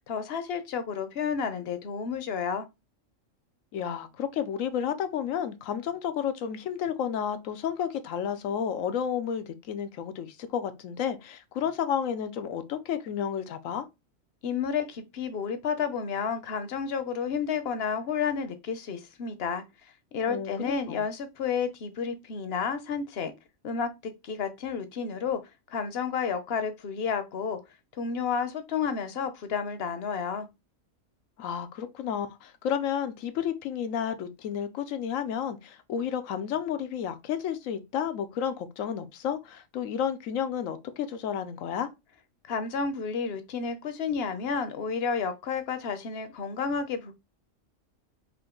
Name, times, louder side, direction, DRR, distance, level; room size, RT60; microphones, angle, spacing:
voice 1, 0.1-2.7 14.4-19.6 20.1-23.3 23.6-25.4 25.7-27.6 28.0-30.5 42.5-47.2, left 6 dB, 55° left, 0.9 m, -31 dB
voice 2, 3.7-13.8 20.3-21.0 31.4-41.9, left 8 dB, 85° left, 1.0 m, -31 dB
5.1 x 2.5 x 3.7 m
omnidirectional pair, 1.3 m